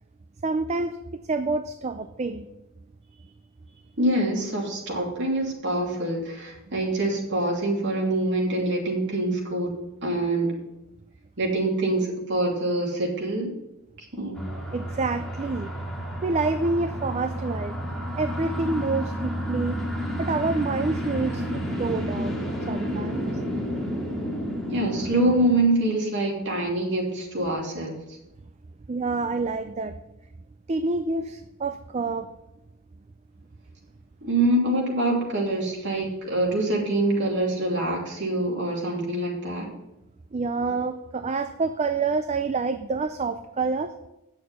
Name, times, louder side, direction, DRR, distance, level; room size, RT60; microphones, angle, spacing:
voice 1, 0.4-2.5 14.7-15.7 16.2-17.7 18.2-19.8 20.2-22.4 22.7-23.2 28.9-29.9 30.7-32.3 40.3-43.9, right 3 dB, 30° right, 8 dB, 0.4 m, -27 dB
voice 2, 4.0-9.7 10.0-10.5 11.4-13.5 14.1-14.4 24.7-28.0 34.2-39.7, right 1 dB, 55° right, -2 dB, 2.8 m, -25 dB
sound 1, 14.4-25.6, equal, ahead, 2.2 m, -31 dB
9.4 x 6.7 x 5.5 m, 0.92 s
head